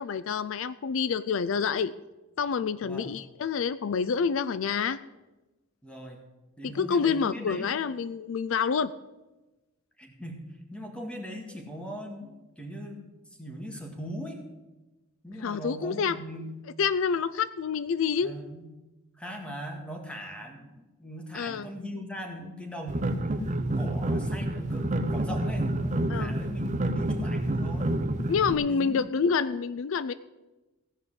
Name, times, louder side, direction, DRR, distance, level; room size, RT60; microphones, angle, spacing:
voice 1, 0.0-1.9 2.4-5.0 6.6-8.9 15.4-16.2 16.8-18.3 21.3-21.7 26.1-26.3 28.3-30.1, left 6 dB, 65° left, 15 dB, 0.4 m, -27 dB
voice 2, 5.8-6.2 6.6-7.7 10.0-13.1 13.4-14.4 15.2-16.5 18.2-18.6 19.2-27.9 28.7-29.0, equal, 5° left, 2 dB, 1.9 m, -40 dB
sound 1, 22.9-28.5, right 1 dB, 35° right, 0.7 m, -28 dB
16.0 x 5.5 x 8.0 m, 1.1 s
head